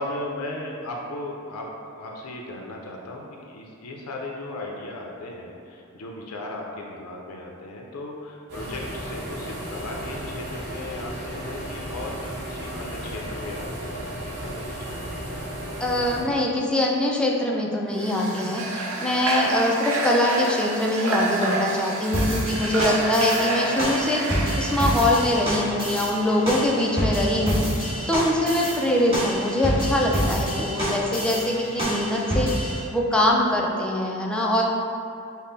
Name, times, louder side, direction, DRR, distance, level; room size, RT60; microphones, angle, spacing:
voice 1, 0.0-15.0, left 2 dB, 75° left, -1 dB, 0.5 m, -36 dB
sound 1, 8.5-16.2, right 1 dB, 50° right, 1.1 m, -34 dB
voice 2, 15.8-34.6, left 1 dB, 5° left, -2 dB, 0.4 m, -23 dB
Water / Water tap faucet, 17.9-25.5, right 1 dB, 65° right, 0.7 m, -28 dB
sound 2, 22.1-32.8, equal, 25° right, 1.4 m, -27 dB
5.3 x 2.1 x 3.9 m, 2.7 s
head